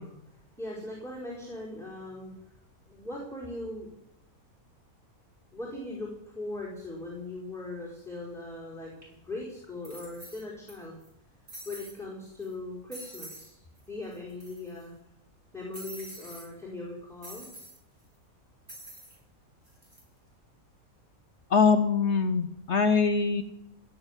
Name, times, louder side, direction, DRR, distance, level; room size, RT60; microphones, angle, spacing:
voice 1, 0.0-2.4 2.9-3.9 5.5-11.0 11.6-13.6 13.9-14.9 15.5-17.5, left 2 dB, ahead, -7 dB, 4.5 m, -40 dB
sound 1, 9.0-9.1 9.8-10.7 11.0-11.1 11.5-12.0 12.4-12.5 12.9-13.5 13.8-13.9 14.1-14.8 15.7-16.5 17.2-17.8 18.7-19.2 19.6-20.0, right 1 dB, 45° right, 8.0 m, -46 dB
voice 2, 21.5-23.4, left 5 dB, 55° left, 10 dB, 1.1 m, -23 dB
17.0 x 8.1 x 9.8 m, 0.81 s
omnidirectional pair, 1.5 m